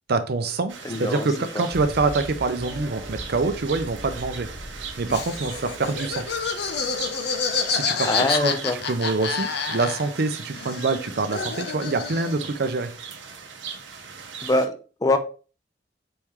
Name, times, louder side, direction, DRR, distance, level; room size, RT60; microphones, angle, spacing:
voice 1, 0.1-0.7 1.0-4.5 5.0-6.2 7.7-8.1 8.4-8.6 8.9-12.9, right 3 dB, 60° right, 9 dB, 0.6 m, -25 dB
sound 1, 0.7-14.7, right 6 dB, 85° right, 0.8 m, -39 dB
voice 2, 0.8-1.3 1.5-1.6 8.0-8.8 14.4-15.2, left 2 dB, 20° left, 8 dB, 0.5 m, -23 dB
sound 2, 1.7-7.7, equal, 35° right, 1.5 m, -40 dB
Laughter, 5.1-10.3 10.5-12.5, left 5 dB, 60° left, 0.7 m, -28 dB
4.4 x 3.6 x 3.1 m, 0.36 s
head